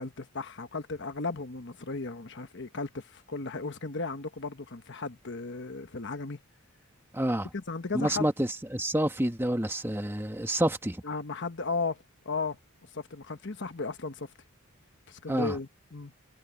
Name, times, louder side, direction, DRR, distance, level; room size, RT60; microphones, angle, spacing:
voice 1, 0.0-6.4 7.5-8.3 11.0-12.6 12.9-14.3 15.1-16.1, left 3 dB, 55° left, 1.2 m, -35 dB
voice 2, 7.1-7.5 7.9-11.0 15.3-15.6, right 1 dB, 10° right, 1.6 m, -28 dB
head